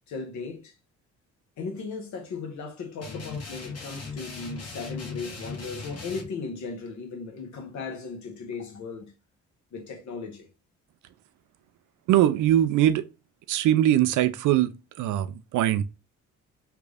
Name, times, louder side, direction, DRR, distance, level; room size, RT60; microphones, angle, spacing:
voice 1, 0.1-0.7 1.6-9.1 9.7-10.5, left 4 dB, 70° left, 1.1 m, -37 dB
sound 1, 3.0-6.3, left 4 dB, 55° left, 1.3 m, -38 dB
voice 2, 12.1-13.0 13.5-15.8, right 12 dB, 80° right, 0.5 m, -22 dB
3.4 x 2.5 x 3.3 m
cardioid pair, 90°, 30 cm